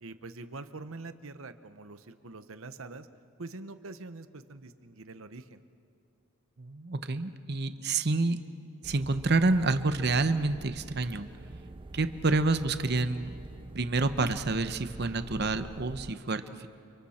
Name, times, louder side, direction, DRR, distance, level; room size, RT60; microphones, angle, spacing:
voice 1, 0.0-3.1 3.4-5.6, right 3 dB, 75° right, 11 dB, 1.0 m, -44 dB
voice 2, 6.6-8.4 8.8-11.3 11.9-13.3 13.7-16.7, right 3 dB, 50° right, 10 dB, 0.9 m, -28 dB
sound 1, 8.8-16.1, right 2 dB, 25° right, 0.5 m, -45 dB
30.0 x 30.0 x 4.4 m, 2.5 s
head